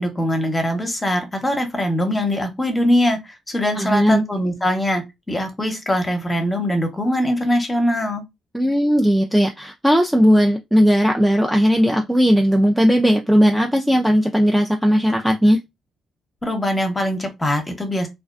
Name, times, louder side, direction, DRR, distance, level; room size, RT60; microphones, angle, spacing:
voice 1, 0.0-8.2 16.4-18.1, left 1 dB, 15° left, 0.8 m, -22 dB
voice 2, 3.8-4.2 8.5-15.6, equal, 5° right, 0.3 m, -17 dB
2.4 x 2.1 x 2.4 m
cardioid pair, 90°, 0 cm